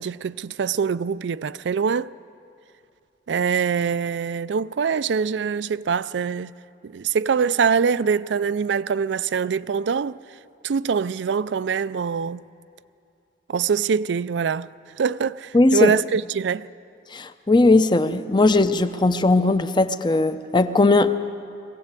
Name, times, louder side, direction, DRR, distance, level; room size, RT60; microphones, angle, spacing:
voice 1, 0.0-2.1 3.3-6.5 6.8-10.2 10.6-12.4 13.5-14.7 15.0-16.7, right 6 dB, 80° right, 0.4 m, -24 dB
voice 2, 15.5-15.9 17.1-21.1, left 2 dB, 25° left, 0.6 m, -18 dB
21.0 x 16.5 x 8.3 m
head